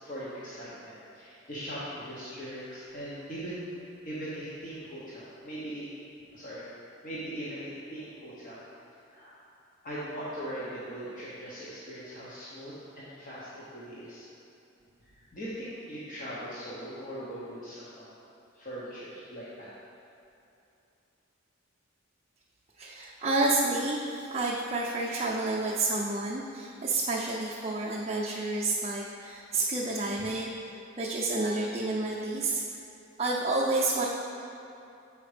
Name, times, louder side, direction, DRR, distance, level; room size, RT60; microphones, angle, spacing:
voice 1, 0.0-3.7 4.0-5.9 6.3-6.7 7.0-8.6 9.1-9.3 9.8-14.3 15.0-18.1 18.5-19.7, equal, 45° left, -9 dB, 1.1 m, -40 dB
voice 2, 22.8-30.5 31.0-32.8 33.2-34.1, right 2 dB, 30° right, -5 dB, 0.6 m, -29 dB
7.2 x 5.1 x 5.0 m, 2.8 s
head